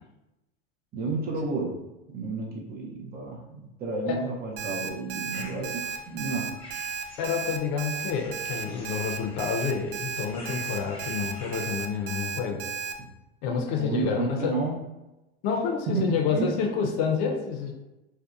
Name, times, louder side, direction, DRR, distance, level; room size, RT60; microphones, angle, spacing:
voice 1, 0.9-1.8 2.1-6.6 8.8-8.9 13.8-14.8 15.9-16.6, right 3 dB, 25° right, -1 dB, 0.5 m, -31 dB
Alarm, 4.6-12.9, right 6 dB, 85° right, 0.5 m, -34 dB
sound 1, 5.3-12.2, left 2 dB, 15° left, 0.7 m, -49 dB
voice 2, 7.2-12.6 13.4-14.6 15.4-17.7, left 6 dB, 50° left, 2 dB, 0.6 m, -28 dB
2.7 x 2.2 x 2.3 m, 0.99 s
hypercardioid pair, 100°, 35 cm